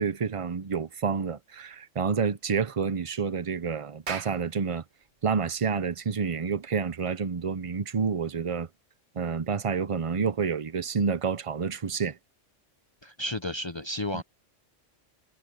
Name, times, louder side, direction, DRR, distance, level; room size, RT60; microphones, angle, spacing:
voice 1, 0.0-4.8 5.2-8.7 9.2-12.2 14.1-14.2, right 5 dB, 35° right, 0.6 m, -29 dB
Clapping, 4.1-8.7, right 6 dB, 60° right, 1.5 m, -44 dB
voice 2, 13.0-14.2, left 1 dB, 30° left, 0.6 m, -32 dB
omnidirectional pair, 1.3 m